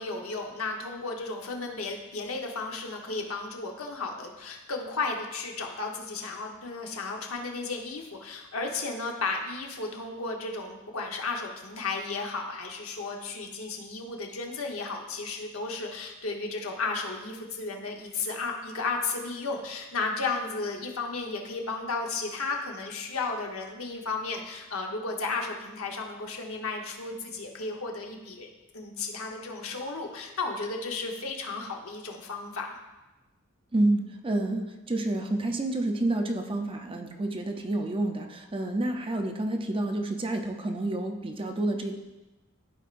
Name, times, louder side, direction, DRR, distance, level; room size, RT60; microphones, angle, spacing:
voice 1, 0.0-28.5 28.7-32.7, left 3 dB, 75° left, 1 dB, 1.0 m, -34 dB
voice 2, 33.7-42.0, right 2 dB, 25° right, 4 dB, 0.6 m, -29 dB
13.5 x 4.6 x 2.5 m, 1.1 s
head